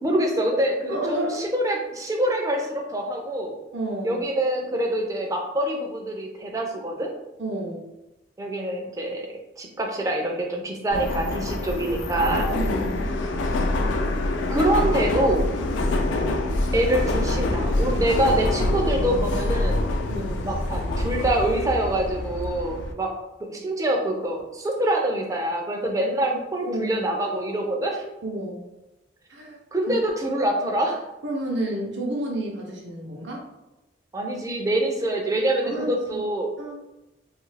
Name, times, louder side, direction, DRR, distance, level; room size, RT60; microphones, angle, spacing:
voice 1, 0.0-3.5 4.0-7.1 8.4-9.3 9.6-12.5 14.5-15.4 16.7-19.8 20.4-23.1 23.5-28.0 29.7-31.0 34.1-36.5, right 1 dB, 15° right, 1 dB, 0.4 m, -25 dB
voice 2, 0.9-1.4 3.7-4.2 7.4-7.9 12.5-13.1 20.1-20.4 26.6-26.9 28.2-28.6 29.3-29.6 29.9-30.0 31.2-33.4 35.6-36.2 36.6-36.8, right 1 dB, 65° right, -2 dB, 0.6 m, -30 dB
Subway metro underground, 10.9-22.9, left 2 dB, 80° left, 0.4 m, -25 dB
2.7 x 2.4 x 3.1 m, 0.96 s
head